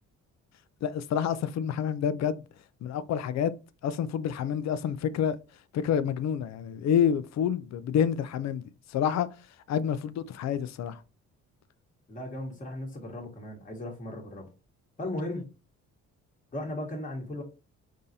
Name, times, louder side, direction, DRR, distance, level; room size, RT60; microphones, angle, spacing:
voice 1, 0.8-2.4 2.8-3.5 3.8-5.4 5.7-8.6 8.9-9.3 9.7-11.0, left 8 dB, 60° left, 0.5 m, -28 dB
voice 2, 12.1-14.5 15.0-15.4 16.5-17.4, left 1 dB, 25° left, 1.3 m, -36 dB
4.0 x 3.6 x 2.7 m
cardioid pair, 90°, 30 cm